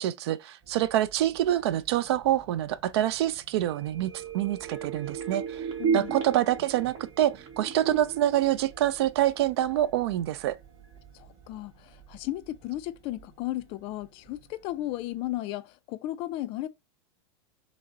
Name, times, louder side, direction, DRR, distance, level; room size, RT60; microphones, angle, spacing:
voice 1, 0.0-5.7 5.9-10.6, right 12 dB, 70° right, 0.4 m, -26 dB
sound 1, 0.6-15.4, right 6 dB, 30° right, 1.4 m, -56 dB
sound 2, 3.7-9.3 9.7-9.8, right 6 dB, 55° right, 1.2 m, -34 dB
voice 2, 5.8-6.2 11.1-16.7, left 15 dB, 40° left, 0.4 m, -35 dB
5.0 x 2.0 x 2.5 m
supercardioid pair, 135°, 14 cm